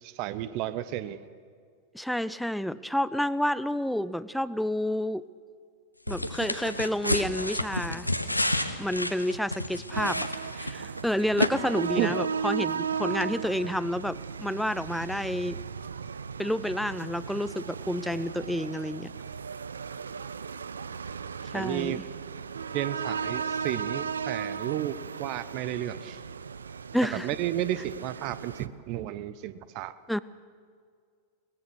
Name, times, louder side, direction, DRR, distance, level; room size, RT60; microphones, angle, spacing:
voice 1, 0.0-1.2 11.9-12.2 21.5-22.0 22.7-26.2 27.2-29.9, right 13 dB, 45° right, 15 dB, 0.9 m, -32 dB
voice 2, 1.9-5.3 6.1-8.1 8.8-10.3 10.5-15.6 16.4-19.1 21.5-22.0 26.9-27.3 30.1-30.2, equal, ahead, 18 dB, 0.5 m, -29 dB
sound 1, 6.1-11.0 11.4-11.5, left 1 dB, 85° left, 1.1 m, -30 dB
sound 2, 9.9-28.7, right 6 dB, 70° right, 0.6 m, -36 dB
22.5 x 19.0 x 6.4 m, 2.1 s
figure-of-eight pair, 90°, 0 cm